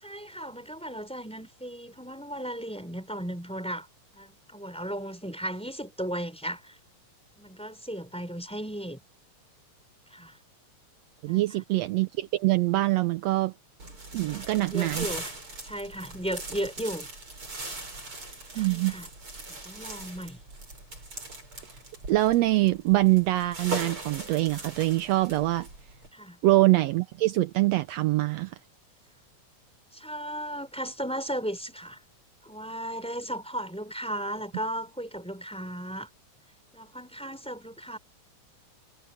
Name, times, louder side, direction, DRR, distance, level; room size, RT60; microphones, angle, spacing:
voice 1, 0.0-3.9 4.1-6.8 7.4-9.0 10.1-10.4 11.3-11.6 14.3-15.3 15.6-17.1 18.5-19.1 19.6-20.4 26.1-26.4 29.9-32.0 32.4-36.1 36.7-38.0, equal, ahead, 4.1 m, -36 dB
voice 2, 11.2-13.5 14.1-15.1 18.6-19.0 22.1-25.7 26.4-28.6, right 18 dB, 80° right, 1.6 m, -24 dB
sound 1, 13.8-26.1, right 2 dB, 45° right, 8.8 m, -40 dB
omnidirectional pair, 3.3 m